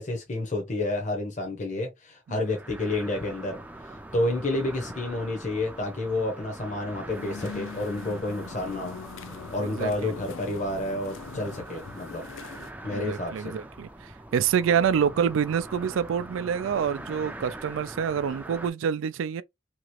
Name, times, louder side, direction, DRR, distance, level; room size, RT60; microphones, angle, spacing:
voice 1, 0.0-9.0 9.5-12.2 12.8-13.5, left 2 dB, 40° left, 0.8 m, -30 dB
sound 1, 2.3-18.7, right 1 dB, 10° right, 0.4 m, -43 dB
sound 2, 7.1-12.7, left 6 dB, 80° left, 0.4 m, -42 dB
voice 2, 9.6-10.1 12.9-19.4, right 7 dB, 85° right, 0.3 m, -27 dB
2.9 x 2.4 x 2.9 m
head